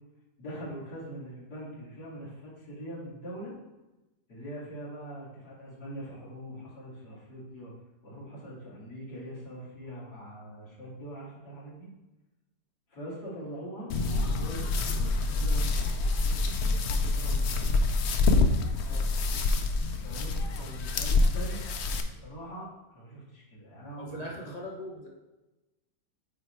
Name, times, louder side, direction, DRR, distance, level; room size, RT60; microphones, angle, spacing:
voice 1, 0.4-3.5 4.3-7.7 8.0-11.9 12.9-13.9 14.2-17.8 19.9-21.6 22.1-24.5, right 1 dB, 60° left, -7 dB, 3.1 m, -43 dB
sound 1, 13.9-22.0, left 3 dB, 90° left, 0.5 m, -26 dB
voice 2, 24.0-25.1, equal, 25° left, -3 dB, 1.0 m, -41 dB
8.8 x 3.4 x 4.5 m, 1.0 s
omnidirectional pair, 1.9 m